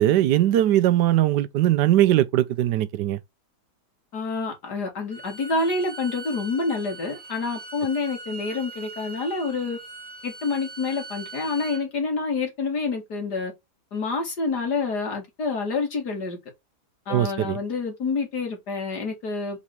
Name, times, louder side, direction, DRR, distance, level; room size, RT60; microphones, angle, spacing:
voice 1, 0.0-3.2 17.1-17.6, right 13 dB, 85° right, 1.2 m, -20 dB
voice 2, 4.1-9.8 10.2-13.5 13.9-16.4 17.1-19.6, left 4 dB, 70° left, 2.8 m, -28 dB
Bowed string instrument, 5.1-11.8, right 3 dB, 25° right, 1.2 m, -41 dB
4.9 x 4.2 x 5.8 m
omnidirectional pair, 1.8 m